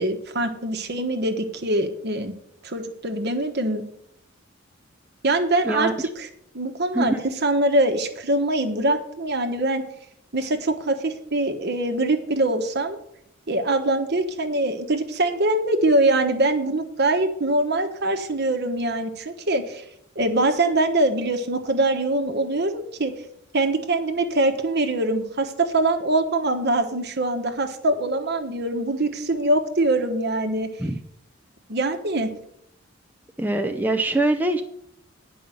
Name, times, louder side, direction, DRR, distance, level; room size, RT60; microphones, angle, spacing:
voice 1, 0.0-2.3 2.6-3.8 5.2-6.3 6.5-9.8 10.3-13.0 13.5-19.8 20.1-23.1 23.5-30.7 31.7-32.3, right 2 dB, 55° right, 6 dB, 1.2 m, -23 dB
voice 2, 33.4-34.6, right 2 dB, 10° right, 4 dB, 0.6 m, -23 dB
9.8 x 5.5 x 7.8 m, 0.72 s
head